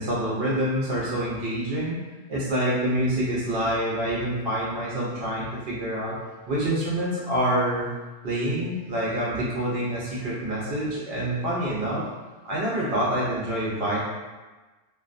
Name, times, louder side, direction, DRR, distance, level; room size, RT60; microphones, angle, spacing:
voice 1, 0.0-2.0 2.3-6.2 6.5-7.9 8.2-12.0 12.4-14.0, right 1 dB, 65° right, -6 dB, 0.9 m, -26 dB
2.3 x 2.2 x 2.4 m, 1.2 s
omnidirectional pair, 1.1 m